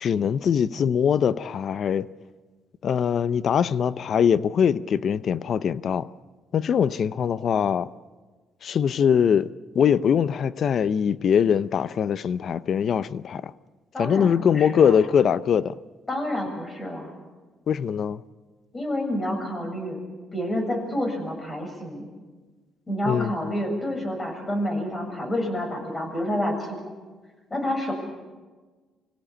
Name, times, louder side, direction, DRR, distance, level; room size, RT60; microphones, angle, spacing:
voice 1, 0.0-2.1 2.8-6.1 6.5-7.9 8.6-9.5 9.7-13.5 14.0-15.7 17.7-18.2 23.0-23.3, left 8 dB, 60° left, 0.7 m, -22 dB
voice 2, 13.9-15.0 16.1-17.1 18.7-20.0 20.3-22.1 22.9-26.8 27.5-27.9, left 1 dB, 25° left, 7.4 m, -28 dB
25.5 x 16.5 x 8.7 m
cardioid pair, 90°, 0 cm